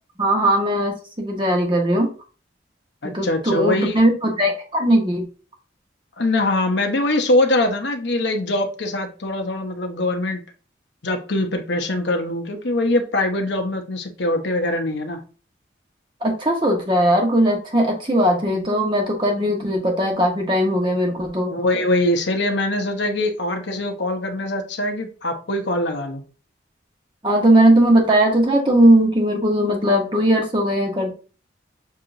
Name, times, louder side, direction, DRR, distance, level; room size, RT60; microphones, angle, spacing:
voice 1, 0.2-2.1 3.1-5.2 16.2-21.5 27.2-31.1, right 1 dB, 25° right, 1 dB, 1.2 m, -18 dB
voice 2, 3.0-4.0 6.2-10.4 11.0-15.2 21.5-26.2, left 1 dB, 75° left, 5 dB, 0.9 m, -22 dB
7.0 x 2.9 x 2.6 m, 0.36 s
head